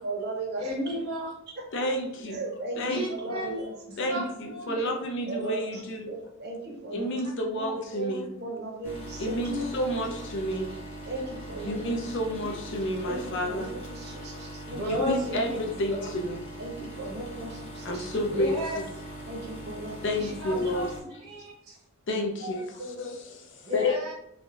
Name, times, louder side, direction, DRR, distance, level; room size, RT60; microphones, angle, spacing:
voice 1, 0.0-0.6 2.3-3.7 4.1-4.2 4.8-4.9 5.3-5.7 6.1-7.1 7.9-9.4 9.9-10.0 11.1-11.9 13.0-14.8 16.6-18.0 19.3-19.9 20.5-20.6 22.4-22.5 22.8-23.1, right 2 dB, 50° right, 1 dB, 0.7 m, -37 dB
voice 2, 0.6-1.4 2.9-3.6 3.9-4.9 7.5-7.8 9.4-9.7 11.7-11.9 12.4-12.5 14.7-15.6 16.0-16.1 18.3-18.8 20.2-20.9 21.2-21.8 23.6-24.1, left 1 dB, 85° right, -3 dB, 1.0 m, -33 dB
voice 3, 1.7-2.4 2.8-3.1 4.0-6.1 6.9-8.3 9.2-10.7 11.6-13.7 14.8-16.4 17.8-18.8 20.0-20.9 22.1-24.0, equal, 55° left, 3 dB, 0.4 m, -30 dB
sound 1, 8.8-21.0, right 1 dB, 25° left, 1.4 m, -41 dB
3.3 x 2.5 x 2.3 m, 0.77 s
head